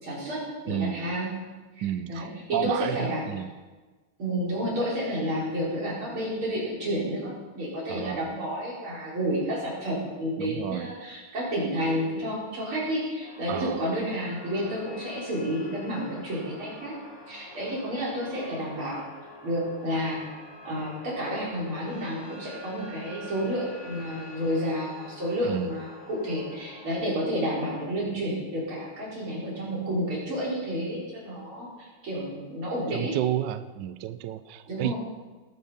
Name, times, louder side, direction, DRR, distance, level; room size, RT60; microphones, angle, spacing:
voice 1, 0.0-1.3 1.8-3.3 4.2-17.0 17.3-19.1 19.4-20.2 20.6-33.2 34.7-34.9, equal, 85° right, -6 dB, 5.6 m, -30 dB
voice 2, 0.7-1.0 1.8-3.5 7.9-8.3 10.4-10.9 13.5-13.8 25.4-25.7 32.9-34.9, right 11 dB, 70° right, 12 dB, 1.2 m, -31 dB
sound 1, 13.2-26.9, left 1 dB, 40° left, 3.3 m, -47 dB
19.5 x 8.7 x 5.8 m, 1.3 s
omnidirectional pair, 2.2 m